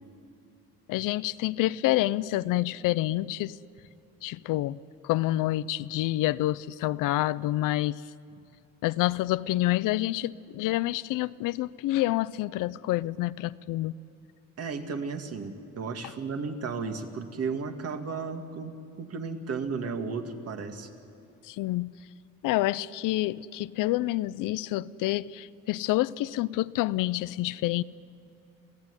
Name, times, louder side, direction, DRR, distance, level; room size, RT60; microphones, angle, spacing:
voice 1, 0.9-3.6 4.2-4.8 5.0-8.0 8.8-14.0 21.4-21.9 22.4-27.8, left 16 dB, 75° left, 18 dB, 0.6 m, -28 dB
voice 2, 14.6-20.9, right 4 dB, 50° right, 5 dB, 2.3 m, -34 dB
27.5 x 15.5 x 9.8 m, 2.5 s
cardioid pair, 105°, 32 cm